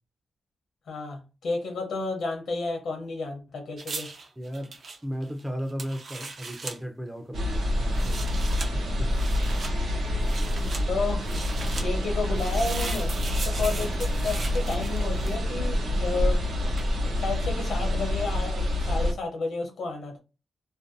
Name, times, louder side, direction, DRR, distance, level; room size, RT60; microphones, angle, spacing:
voice 1, 0.9-4.1 10.9-11.3 11.8-13.1 13.4-16.5 17.2-20.2, left 3 dB, 80° left, 0.6 m, -31 dB
sound 1, 3.8-6.8 7.8-8.7 9.1-9.7 10.2-10.8 11.2-11.9 12.3-15.5 16.8-16.9, right 3 dB, 55° right, 0.5 m, -38 dB
voice 2, 4.4-4.7 5.0-8.2 8.7-9.4, equal, 10° right, 0.4 m, -35 dB
sound 2, 7.3-19.1, left 1 dB, 80° right, 0.8 m, -27 dB
2.5 x 2.2 x 2.5 m
wide cardioid pair, 115°, 0 cm